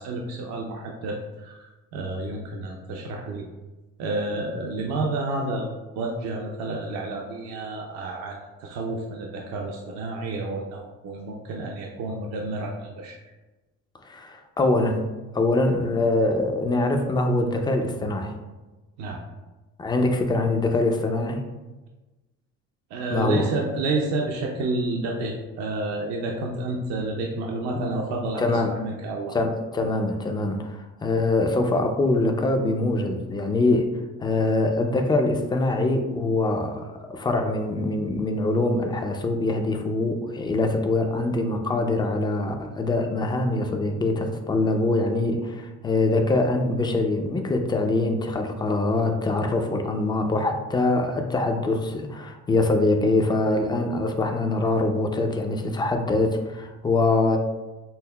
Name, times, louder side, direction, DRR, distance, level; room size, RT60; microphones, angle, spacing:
voice 1, 0.0-3.4 4.0-5.7 5.9-13.2 19.0-19.2 22.9-29.4, right 2 dB, 60° right, 0 dB, 0.5 m, -30 dB
voice 2, 14.0-15.0 15.3-18.3 19.8-21.4 23.1-23.5 28.4-28.7 29.3-33.9 34.2-57.4, left 2 dB, 15° left, 4 dB, 0.4 m, -24 dB
5.5 x 2.0 x 2.2 m, 1.2 s
supercardioid pair, 95°, 31 cm